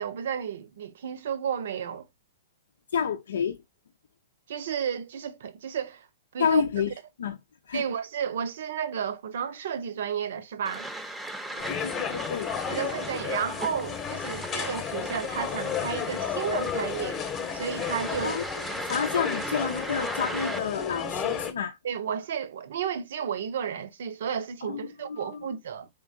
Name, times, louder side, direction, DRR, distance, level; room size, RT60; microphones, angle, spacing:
voice 1, 0.0-2.1 4.5-6.1 6.3-6.6 7.7-10.9 12.7-17.2 17.5-18.4 21.8-25.9, right 8 dB, 70° right, 0.6 m, -32 dB
voice 2, 2.9-3.6 6.4-6.9 7.2-7.4 7.7-7.8 11.5-12.5 18.2-18.4 18.9-21.8 24.6-25.5, left 7 dB, 80° left, 0.5 m, -29 dB
sound 1, 10.7-20.6, right 1 dB, 10° right, 0.6 m, -38 dB
sound 2, 11.6-21.5, left 7 dB, 25° left, 0.9 m, -33 dB
3.8 x 3.6 x 2.5 m
hypercardioid pair, 120°, 0 cm